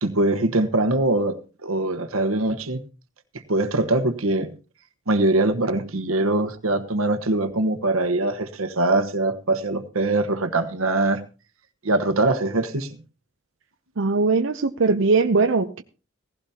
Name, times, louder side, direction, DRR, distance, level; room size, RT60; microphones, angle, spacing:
voice 1, 0.0-2.8 3.5-4.5 5.1-11.2 11.8-13.0, right 2 dB, 90° right, 1.3 m, -22 dB
voice 2, 14.0-15.8, right 4 dB, 65° right, 0.7 m, -20 dB
17.0 x 15.5 x 2.9 m
head